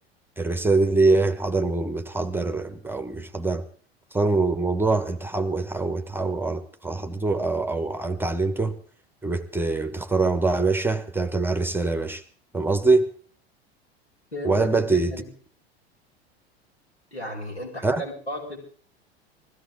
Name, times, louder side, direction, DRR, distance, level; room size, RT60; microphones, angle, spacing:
voice 1, 0.4-3.6 4.1-8.8 9.2-12.2 12.5-13.1 14.4-15.1 17.8-18.0, right 3 dB, 5° right, 9 dB, 1.3 m, -24 dB
voice 2, 14.3-15.3 17.1-18.6, left 1 dB, 90° left, -3 dB, 7.1 m, -34 dB
21.5 x 16.0 x 3.8 m, 0.43 s
figure-of-eight pair, 80°, 32 cm